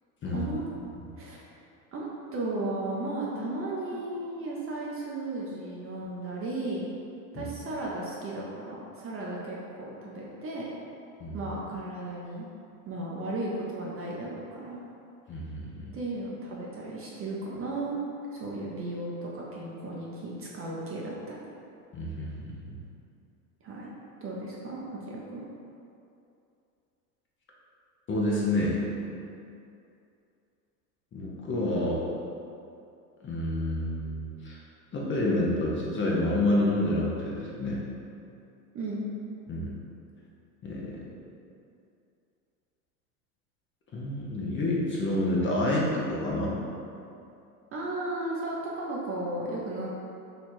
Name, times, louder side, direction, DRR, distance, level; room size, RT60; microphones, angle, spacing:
voice 1, 0.2-0.7 1.2-1.4 1.9-6.8 7.3-10.7 11.3-12.5 12.8-14.8 15.9-18.0 18.3-21.4 23.6-23.9 24.2-25.5 38.7-39.0 47.7-49.9, right 2 dB, 30° right, -4 dB, 0.6 m, -35 dB
voice 2, 11.2-11.5 15.3-15.9 21.9-22.8 28.1-28.8 31.1-32.0 33.2-34.6 34.9-37.8 39.5-39.7 40.6-41.0 43.9-46.6, left 1 dB, 25° left, -4 dB, 0.7 m, -28 dB
3.1 x 2.4 x 4.3 m, 2.6 s
hypercardioid pair, 95°, 47 cm